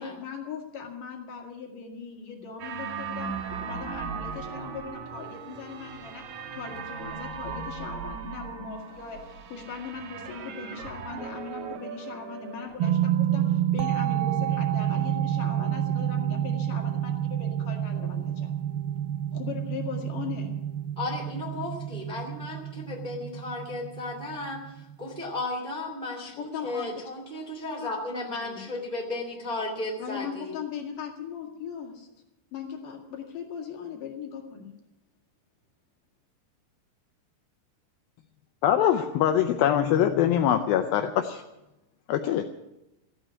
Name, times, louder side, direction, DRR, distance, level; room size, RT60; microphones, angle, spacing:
voice 1, 0.0-9.2 9.5-18.6 19.3-20.5 26.4-26.9 27.8-28.6 30.0-32.1 32.5-34.7, left 7 dB, 60° left, 2 dB, 3.3 m, -39 dB
sound 1, 2.6-12.8, right 6 dB, 65° right, 2.2 m, -38 dB
sound 2, 12.8-25.4, right 11 dB, 80° right, 2.3 m, -29 dB
voice 2, 20.9-24.7 25.0-30.5, left 2 dB, 15° right, 0 dB, 1.8 m, -34 dB
voice 3, 38.6-41.4 42.1-42.4, left 10 dB, 75° left, 6 dB, 2.3 m, -23 dB
15.0 x 9.0 x 9.7 m, 0.94 s
omnidirectional pair, 4.7 m